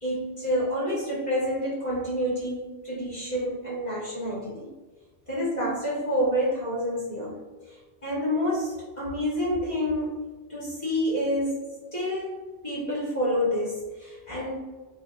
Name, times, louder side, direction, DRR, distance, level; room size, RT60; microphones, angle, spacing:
voice 1, 0.0-4.7 5.3-7.4 8.0-11.6 11.9-12.3 12.6-14.6, equal, 25° left, -8 dB, 1.1 m, -28 dB
4.4 x 3.4 x 2.4 m, 1.3 s
omnidirectional pair, 1.2 m